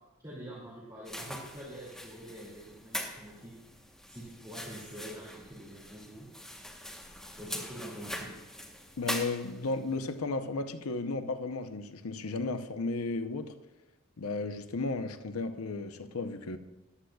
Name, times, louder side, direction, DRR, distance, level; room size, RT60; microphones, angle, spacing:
voice 1, 0.2-3.5 4.1-6.3 7.4-8.4, right 1 dB, 20° right, 2.5 m, -45 dB
sound 1, 1.0-9.8, left 1 dB, 5° left, 1.0 m, -42 dB
voice 2, 9.0-13.6 14.2-16.6, left 3 dB, 90° left, 0.7 m, -34 dB
14.0 x 11.5 x 2.3 m
head